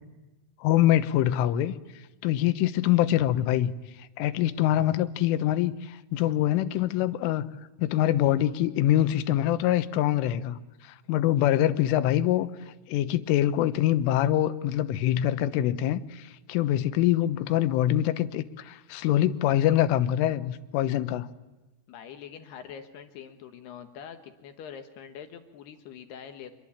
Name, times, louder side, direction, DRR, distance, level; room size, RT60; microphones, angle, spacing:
voice 1, 0.6-1.8 2.2-3.7 4.2-7.5 7.8-12.5 12.9-21.3, left 12 dB, 85° left, 13 dB, 3.6 m, -24 dB
voice 2, 21.9-26.5, left 8 dB, 65° left, 7 dB, 3.0 m, -44 dB
27.0 x 22.5 x 8.7 m, 1.1 s
omnidirectional pair, 5.6 m